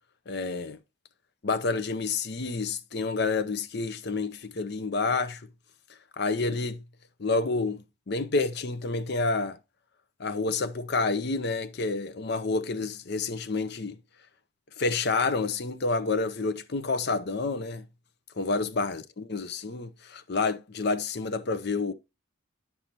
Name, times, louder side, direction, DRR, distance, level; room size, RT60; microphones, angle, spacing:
voice 1, 0.3-0.8 1.4-5.4 6.2-6.8 7.2-9.6 10.2-14.0 14.8-17.8 18.4-21.9, left 3 dB, 50° left, 0.6 m, -29 dB
9.6 x 6.7 x 2.8 m
head